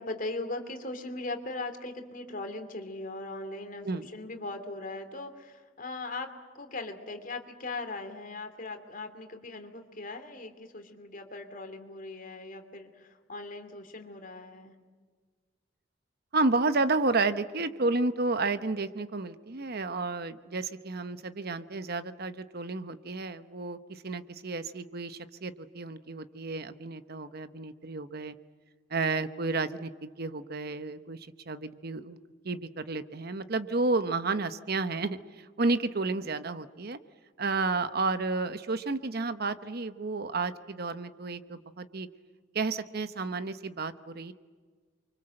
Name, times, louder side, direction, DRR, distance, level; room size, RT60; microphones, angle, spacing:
voice 1, 0.0-14.7, left 2 dB, 45° left, 7 dB, 2.8 m, -39 dB
voice 2, 16.3-28.4 28.9-32.2 32.4-37.0 37.4-42.1 42.5-44.3, right 3 dB, 50° right, 12 dB, 1.0 m, -31 dB
29.0 x 24.5 x 7.8 m, 1.5 s
head